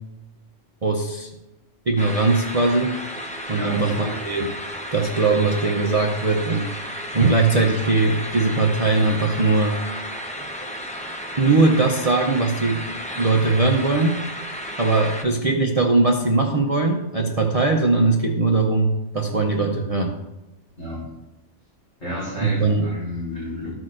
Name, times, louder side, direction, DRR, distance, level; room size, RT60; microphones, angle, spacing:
voice 1, 0.8-1.3 1.9-2.9 3.5-4.5 4.9-6.7 7.1-9.8 11.4-12.8 13.2-14.2 14.8-20.2 22.4-22.9, right 3 dB, 35° right, 1 dB, 0.6 m, -20 dB
sound 1, 2.0-15.2, equal, 5° left, 0.7 m, -33 dB
voice 2, 3.5-4.2 20.8-21.0 22.0-23.7, equal, 40° left, -9 dB, 3.1 m, -30 dB
14.5 x 6.2 x 2.5 m, 0.99 s
omnidirectional pair, 1.3 m